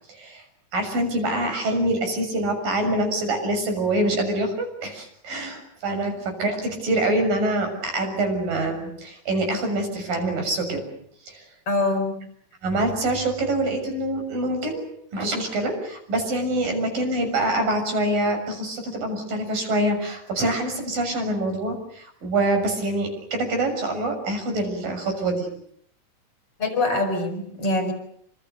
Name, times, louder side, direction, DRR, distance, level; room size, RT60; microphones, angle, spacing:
voice 1, 0.1-0.4 0.7-10.8 11.3-11.4 12.6-14.8 15.1-25.5, right 1 dB, 80° right, 6 dB, 8.5 m, -25 dB
voice 2, 11.7-12.2 26.6-27.9, left 2 dB, 40° left, 6 dB, 7.1 m, -24 dB
28.5 x 27.0 x 6.8 m, 0.67 s
omnidirectional pair, 3.9 m